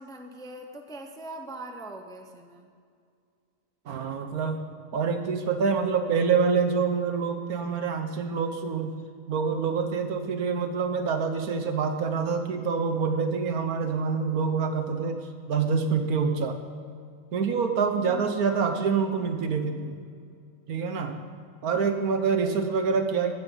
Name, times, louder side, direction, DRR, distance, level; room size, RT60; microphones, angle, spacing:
voice 1, 0.0-2.7 18.0-18.2 22.4-22.5, right 1 dB, 5° left, 4 dB, 0.6 m, -42 dB
voice 2, 3.9-4.6 4.9-9.0 9.3-15.2 15.5-16.6 17.3-20.0 20.7-21.3 21.6-23.3, right 5 dB, 70° right, 6 dB, 1.5 m, -26 dB
15.0 x 13.0 x 4.0 m, 2.3 s
omnidirectional pair, 1.6 m